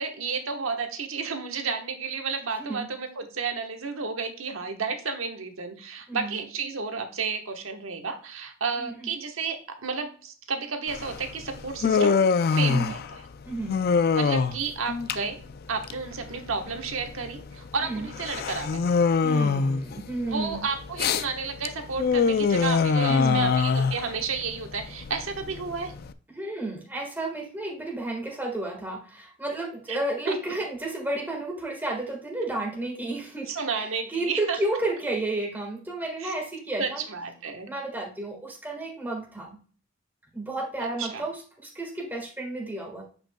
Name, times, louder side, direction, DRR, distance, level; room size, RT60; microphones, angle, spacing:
voice 1, 0.0-13.0 14.2-15.4 15.7-18.8 20.3-25.9 29.9-30.0 30.3-30.4 33.5-34.6 36.2-36.3 36.8-37.7 40.8-41.2, right 5 dB, 80° right, 5 dB, 1.1 m, -32 dB
voice 2, 6.1-6.4 8.8-9.1 12.6-12.9 13.4-13.8 17.8-18.1 19.2-20.7 23.1-23.5 26.3-37.0 37.7-39.6 40.3-43.1, right 2 dB, 10° right, 1 dB, 1.6 m, -32 dB
Human voice, 10.9-26.1, left 5 dB, 50° left, 0.3 m, -25 dB
8.9 x 5.2 x 2.2 m, 0.42 s
head